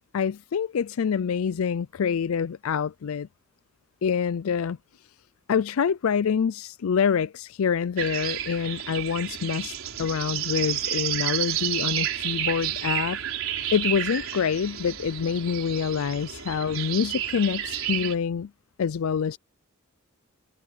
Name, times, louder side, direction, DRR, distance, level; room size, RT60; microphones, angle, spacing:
voice 1, 0.1-3.3 4.0-4.8 5.5-13.2 13.7-18.5 18.8-19.4, left 7 dB, 80° left, 0.4 m, -26 dB
sound 1, 8.0-18.1, right 10 dB, 70° right, 4.3 m, -30 dB
head